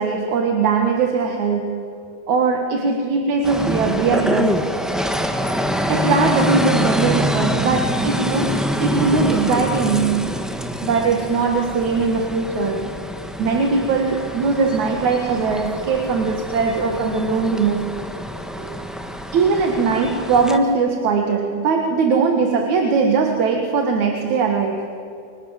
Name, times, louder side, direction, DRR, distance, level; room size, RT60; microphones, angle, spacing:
voice 1, 0.0-1.8 2.3-4.7 5.9-10.5 10.8-12.9 13.4-18.0 18.4-18.8 19.3-24.9, right 4 dB, 70° right, 4 dB, 3.1 m, -20 dB
sound 1, 3.4-20.6, equal, ahead, 0.6 m, -25 dB
30.0 x 25.0 x 7.4 m, 2.6 s
omnidirectional pair, 3.5 m